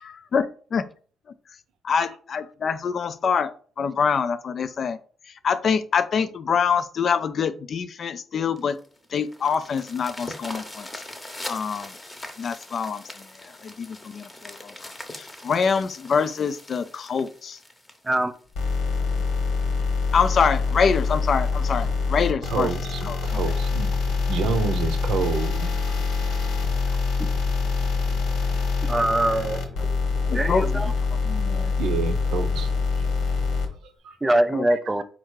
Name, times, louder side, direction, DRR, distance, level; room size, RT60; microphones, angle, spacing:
voice 1, 0.0-0.5 0.7-0.9 1.8-5.0 5.4-8.8 9.1-10.9 11.5-11.9 12.4-17.6 20.1-22.7 23.0-23.4 30.3-30.7 31.2-31.7 34.5-34.6, left 6 dB, 50° left, 0.3 m, -25 dB
sound 1, 8.6-19.0 19.6-19.7 20.2-20.3 20.6-20.7 21.1-21.3 22.2-22.3, left 1 dB, 15° left, 0.8 m, -41 dB
sound 2, 18.6-33.7, left 4 dB, 80° left, 1.2 m, -25 dB
voice 2, 22.5-23.9 24.3-26.0 30.2-30.4 31.8-32.7 33.3-33.4 34.0-34.2, right 6 dB, 80° right, 0.6 m, -29 dB
voice 3, 28.8-29.9 30.3-30.9 34.2-35.0, right 1 dB, 15° right, 0.4 m, -23 dB
4.3 x 2.4 x 4.7 m
cardioid pair, 90°, 0 cm